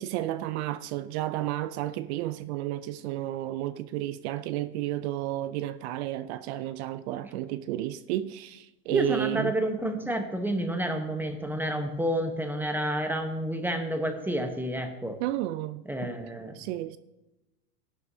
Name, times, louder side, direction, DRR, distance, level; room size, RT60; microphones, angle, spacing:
voice 1, 0.0-9.6 15.2-16.1 16.5-17.0, right 14 dB, 45° right, 0.5 m, -32 dB
voice 2, 8.9-15.2 15.9-16.6, right 1 dB, 5° right, 1.0 m, -30 dB
15.0 x 11.0 x 2.8 m
supercardioid pair, 125°, 46 cm